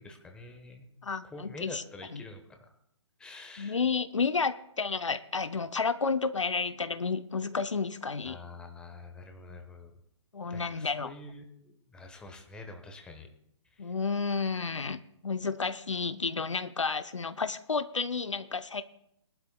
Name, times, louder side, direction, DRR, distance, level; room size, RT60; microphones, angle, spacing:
voice 1, 0.0-0.9 1.2-2.7 3.2-3.8 8.2-9.9 10.5-13.3 13.7-14.0, left 2 dB, 5° left, 4 dB, 1.2 m, -46 dB
voice 2, 1.0-1.8 2.1-2.2 3.6-8.4 10.3-11.1 13.8-18.8, left 5 dB, 80° left, 12 dB, 0.7 m, -31 dB
21.5 x 12.0 x 2.3 m, 0.77 s
figure-of-eight pair, 135°, 16 cm